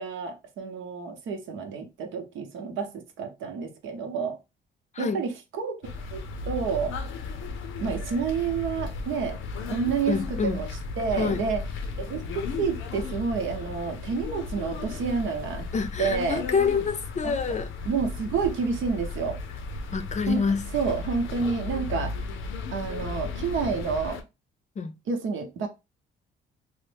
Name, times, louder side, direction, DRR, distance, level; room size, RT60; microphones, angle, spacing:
voice 1, 0.0-4.4 5.0-5.8 6.1-6.9 7.8-9.4 9.7-11.6 12.0-12.2 12.6-15.7 16.0-16.4 17.2-17.3 17.8-19.4 20.3-20.4 20.7-22.1 22.7-24.2 25.1-25.7, right 5 dB, 80° right, 0.8 m, -29 dB
sound 1, 5.8-24.2, left 4 dB, 85° left, 0.6 m, -35 dB
voice 2, 10.1-10.6 11.1-11.5 15.7-17.7 19.9-20.7 24.8-24.9, left 5 dB, 35° left, 0.5 m, -27 dB
3.1 x 2.1 x 3.3 m
cardioid pair, 90°, 20 cm